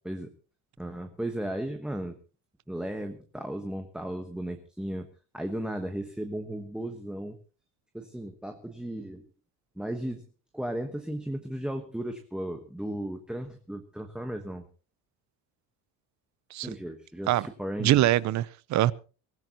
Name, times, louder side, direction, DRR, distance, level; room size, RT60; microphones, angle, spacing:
voice 1, 0.8-2.2 2.7-5.1 5.3-7.4 7.9-9.3 9.8-10.2 10.5-14.7 16.6-18.1, right 1 dB, ahead, 1.2 m, -35 dB
voice 2, 17.8-18.9, right 14 dB, 55° right, 0.7 m, -23 dB
23.5 x 15.0 x 2.9 m
cardioid pair, 130°, 34 cm